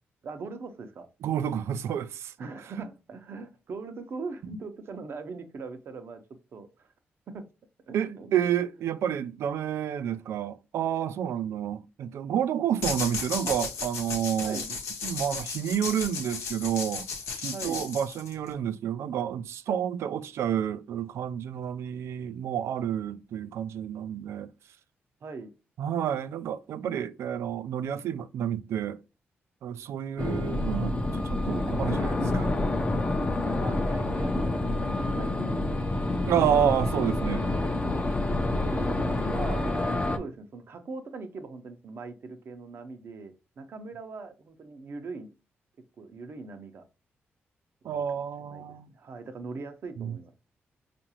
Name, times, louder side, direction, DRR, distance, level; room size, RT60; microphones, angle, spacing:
voice 1, 0.2-1.1 2.4-6.9 7.3-7.5 7.9-8.4 14.4-14.7 17.4-17.9 25.2-25.5 33.4-35.8 38.7-45.3 46.0-46.8 47.8-48.7 48.9-50.3, right 4 dB, 65° right, 0.7 m, -41 dB
voice 2, 1.2-2.3 7.9-14.6 15.0-17.1 17.4-24.5 25.8-29.0 29.6-31.0 31.2-32.5 36.3-37.5 47.9-48.9 50.0-50.2, right 9 dB, 85° right, 0.3 m, -29 dB
sound 1, 12.8-18.5, left 5 dB, 90° left, 0.8 m, -35 dB
sound 2, 30.2-40.2, left 2 dB, 30° left, 0.5 m, -28 dB
4.6 x 2.5 x 2.9 m
cardioid pair, 70°, 4 cm